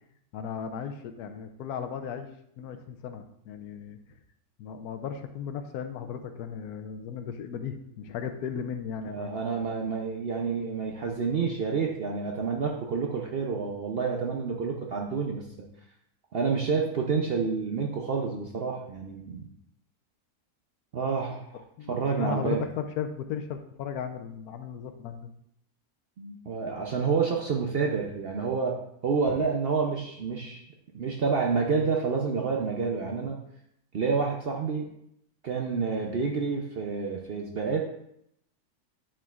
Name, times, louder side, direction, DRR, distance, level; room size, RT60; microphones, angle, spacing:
voice 1, 0.3-2.3 2.6-4.0 4.6-9.3 21.8-25.3 29.3-29.4, left 7 dB, 80° left, 8 dB, 1.1 m, -36 dB
voice 2, 9.1-15.7 16.3-19.5 20.9-21.6 21.9-22.6 26.2-28.8 29.0-30.6 30.9-33.4 33.9-34.9 35.4-37.9, right 5 dB, 60° right, 1 dB, 0.6 m, -29 dB
10.0 x 4.5 x 2.4 m, 0.75 s
omnidirectional pair, 1.6 m